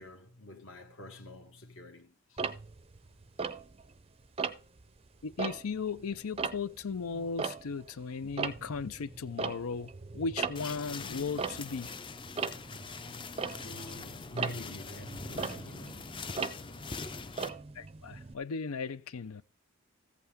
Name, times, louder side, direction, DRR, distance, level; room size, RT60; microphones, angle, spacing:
voice 1, 0.0-2.4 13.6-16.1, left 1 dB, 65° left, 1.9 m, -47 dB
Tick-tock, 2.4-4.0 4.4-4.8 5.2-18.3, right 5 dB, 25° right, 0.5 m, -38 dB
voice 2, 5.2-11.9 17.7-19.4, left 5 dB, 85° left, 0.5 m, -36 dB
sound 1, 10.6-17.5, left 4 dB, 25° left, 0.5 m, -43 dB
14.5 x 8.4 x 3.6 m
head